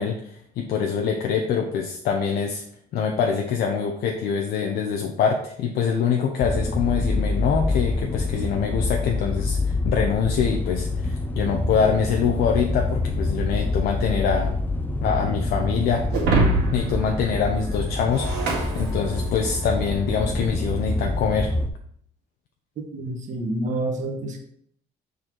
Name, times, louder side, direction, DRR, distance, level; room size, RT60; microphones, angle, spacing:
voice 1, 0.0-2.6 2.9-14.5 15.0-16.1 16.7-21.5, left 6 dB, 70° left, 0.7 m, -24 dB
sound 1, 6.4-21.7, left 2 dB, 10° left, 0.6 m, -26 dB
Shatter, 16.1-19.6, right 2 dB, 85° right, 2.2 m, -25 dB
voice 2, 22.8-24.4, right 2 dB, 45° right, 1.2 m, -28 dB
6.5 x 4.2 x 4.6 m
cardioid pair, 110°, 17 cm